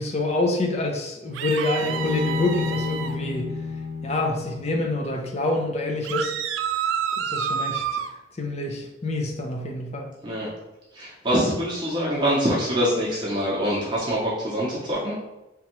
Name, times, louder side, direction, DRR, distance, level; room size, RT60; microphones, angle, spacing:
voice 1, 0.0-3.6 4.0-6.3 7.2-8.0 8.4-10.1, left 2 dB, 35° left, 2 dB, 0.5 m, -27 dB
sound 1, 1.3-3.1 6.0-8.1, right 8 dB, 90° right, 0.3 m, -28 dB
Bowed string instrument, 1.8-5.1, left 4 dB, 80° left, 0.9 m, -30 dB
voice 2, 10.9-15.1, equal, 25° right, -7 dB, 0.8 m, -24 dB
3.4 x 3.0 x 3.0 m, 0.97 s
head